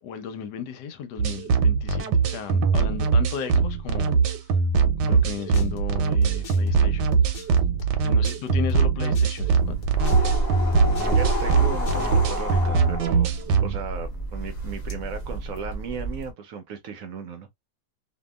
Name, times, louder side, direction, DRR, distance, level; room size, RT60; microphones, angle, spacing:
voice 1, 0.0-4.5 5.0-7.5 8.0-9.6, left 7 dB, 80° left, 1.3 m, -35 dB
sound 1, 1.2-13.8, right 5 dB, 90° right, 1.2 m, -22 dB
sound 2, 5.1-12.3, right 8 dB, 65° left, 1.2 m, -31 dB
voice 2, 5.1-5.4 11.1-13.3 13.6-17.5, right 5 dB, 70° right, 0.9 m, -36 dB
sound 3, 9.4-16.3, equal, 30° left, 0.9 m, -29 dB
2.7 x 2.5 x 2.2 m
omnidirectional pair, 1.8 m